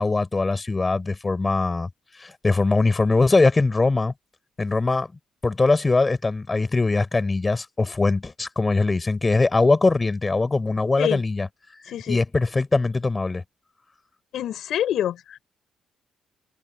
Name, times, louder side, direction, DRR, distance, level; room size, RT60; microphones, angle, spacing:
voice 1, 0.0-1.9 2.2-4.1 4.6-5.1 5.4-11.5 12.1-13.4, left 3 dB, 25° left, 4.3 m, -21 dB
voice 2, 11.9-12.2 14.3-15.4, left 11 dB, 75° left, 4.2 m, -26 dB
cardioid pair, 90°, 0 cm